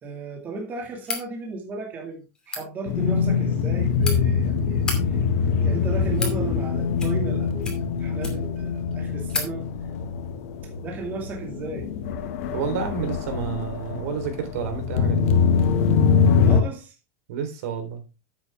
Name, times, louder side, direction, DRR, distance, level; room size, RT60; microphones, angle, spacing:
voice 1, 0.0-5.2 5.6-9.7 10.8-11.9 16.4-17.0, right 3 dB, 20° right, 2.2 m, -35 dB
sound 1, 1.0-1.3 2.3-2.6 3.6-4.1 4.7-5.0 5.8-6.4 6.9-7.3 7.6-8.6 8.9-9.0 9.3-9.5, left 3 dB, 10° left, 2.5 m, -31 dB
sound 2, 2.9-16.6, left 6 dB, 70° left, 1.7 m, -23 dB
voice 2, 12.5-15.3 17.3-18.0, right 6 dB, 75° right, 3.6 m, -30 dB
10.0 x 8.2 x 3.5 m
supercardioid pair, 170°, 8 cm